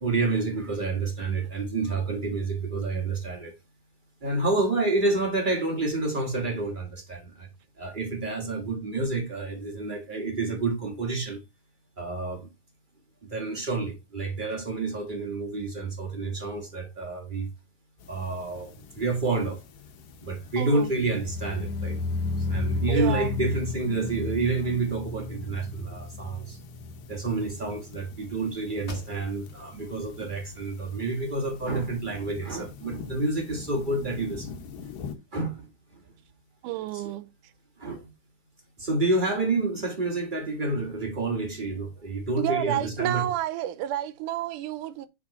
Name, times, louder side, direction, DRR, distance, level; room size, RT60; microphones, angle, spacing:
voice 1, 0.0-3.5 4.2-7.5 7.8-11.4 12.0-12.4 13.3-17.5 18.1-19.6 20.2-22.0 22.4-26.6 27.1-34.5 35.3-35.7 36.9-37.0 37.8-38.1 38.8-43.4, right 3 dB, 65° right, 0.5 m, -29 dB
sound 1, 18.0-35.2, left 5 dB, 90° left, 2.8 m, -46 dB
voice 2, 20.6-20.9 22.9-23.3 36.6-37.3 42.4-45.1, right 13 dB, 80° right, 2.1 m, -30 dB
sound 2, 21.0-28.1 28.3-28.8 29.1-29.2, left 2 dB, 75° left, 1.3 m, -33 dB
sound 3, 28.9-29.7 30.1-30.2 30.8-31.7, equal, 35° left, 1.0 m, -46 dB
9.2 x 3.7 x 4.2 m
omnidirectional pair, 3.8 m